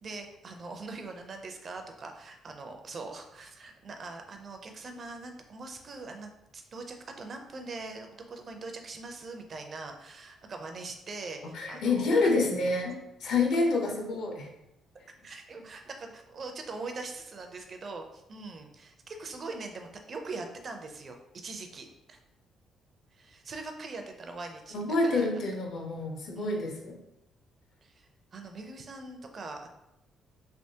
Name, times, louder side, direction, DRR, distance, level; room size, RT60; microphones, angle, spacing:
voice 1, 0.0-12.3 13.6-13.7 15.2-22.2 23.1-25.3 26.3-26.7 27.8-29.7, right 3 dB, 35° right, 4 dB, 0.4 m, -42 dB
voice 2, 11.5-12.9 13.2-14.5 24.7-27.0, left 3 dB, 70° left, 1 dB, 0.7 m, -27 dB
3.4 x 2.9 x 2.7 m, 0.87 s
cardioid pair, 140°, 0 cm